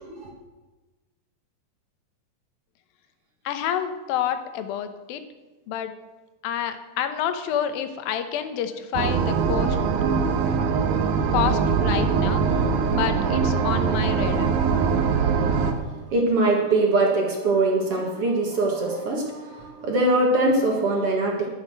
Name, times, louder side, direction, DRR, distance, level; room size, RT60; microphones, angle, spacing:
voice 1, 3.5-5.2 5.7-5.9 6.4-9.8 11.3-12.6 12.9-14.5, left 9 dB, 85° left, 9 dB, 2.7 m, -28 dB
sound 1, 8.9-15.7, right 6 dB, 80° right, 2.9 m, -22 dB
voice 2, 15.6-21.5, right 2 dB, 50° right, 0 dB, 2.1 m, -23 dB
11.0 x 10.5 x 6.3 m, 1.2 s
omnidirectional pair, 4.1 m